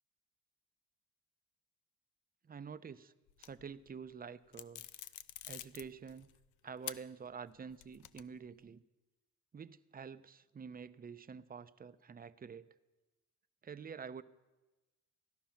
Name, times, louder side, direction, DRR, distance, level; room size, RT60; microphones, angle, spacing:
voice 1, 2.4-3.1 3.4-4.8 5.5-6.3 6.6-8.8 9.5-12.7 13.6-14.2, right 6 dB, 30° right, 14 dB, 0.6 m, -48 dB
sound 1, 3.3-3.9 4.5-6.4 6.8-7.0 7.5-8.5, left 13 dB, 85° left, 0.6 m, -47 dB
16.0 x 11.5 x 5.8 m, 1.1 s
cardioid pair, 90°, 30 cm